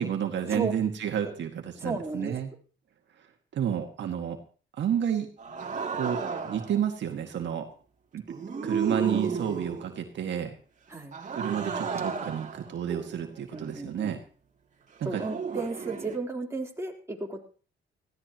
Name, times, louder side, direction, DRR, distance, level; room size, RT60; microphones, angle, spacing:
voice 1, 0.0-2.5 3.5-4.4 4.8-5.3 5.9-7.7 8.1-8.2 8.6-10.6 11.3-14.2 15.0-15.2, right 9 dB, 65° right, 4 dB, 2.1 m, -30 dB
voice 2, 1.8-2.4 10.9-11.2 13.5-14.1 15.0-17.4, right 3 dB, 15° right, 0 dB, 3.8 m, -34 dB
sound 1, 5.4-6.8 8.3-10.0 11.1-13.8 15.2-16.2, right 5 dB, 40° right, 2.8 m, -33 dB
20.0 x 15.5 x 3.1 m, 0.39 s
cardioid pair, 90°, 20 cm